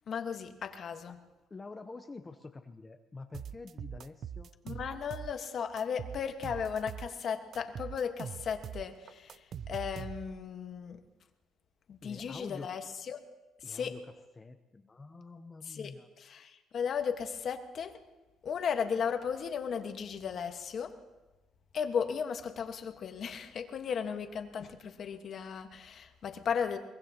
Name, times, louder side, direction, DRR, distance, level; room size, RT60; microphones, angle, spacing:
voice 1, 0.1-1.2 4.6-11.0 11.9-13.2 13.6-13.9 15.7-15.9 16.2-18.0 18.4-20.9 21.7-26.8, left 7 dB, 50° left, 6 dB, 1.3 m, -35 dB
voice 2, 1.5-4.5 12.0-12.7 13.6-16.1, left 3 dB, 20° left, 7 dB, 0.7 m, -47 dB
sound 1, 3.3-5.5 5.8-7.2 7.5-10.5, right 8 dB, 50° right, 0.4 m, -43 dB
23.0 x 20.5 x 2.9 m, 1.1 s
cardioid pair, 125°, 0 cm